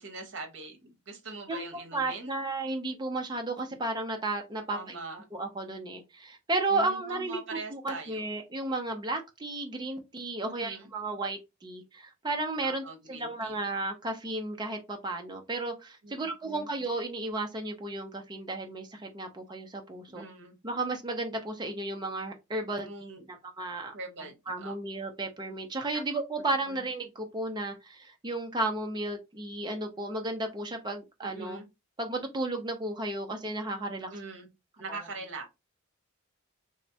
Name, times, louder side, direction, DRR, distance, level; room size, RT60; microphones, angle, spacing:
voice 1, 0.0-2.3 4.7-5.2 6.7-8.2 10.4-10.9 12.6-13.6 16.0-16.7 20.1-20.5 22.8-23.2 23.9-24.7 26.7-26.8 31.2-31.7 34.1-34.5 34.8-35.5, right 3 dB, 55° right, 0.9 m, -42 dB
voice 2, 1.5-4.9 5.3-7.4 7.7-20.2 20.6-22.9 23.3-23.9 24.5-31.6 32.0-34.1, right 2 dB, 20° right, 0.4 m, -33 dB
3.2 x 2.0 x 2.6 m
head